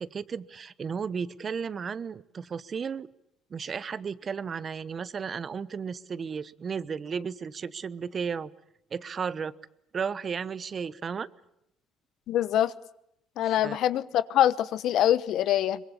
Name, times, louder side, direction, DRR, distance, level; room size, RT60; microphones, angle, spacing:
voice 1, 0.0-3.1 3.5-8.5 8.9-9.5 9.9-11.3 13.4-13.8, right 6 dB, 40° right, 17 dB, 1.0 m, -34 dB
voice 2, 12.3-12.7 13.4-15.8, left 11 dB, 70° left, 16 dB, 1.0 m, -24 dB
24.0 x 21.5 x 9.8 m, 0.78 s
supercardioid pair, 85°, 0 cm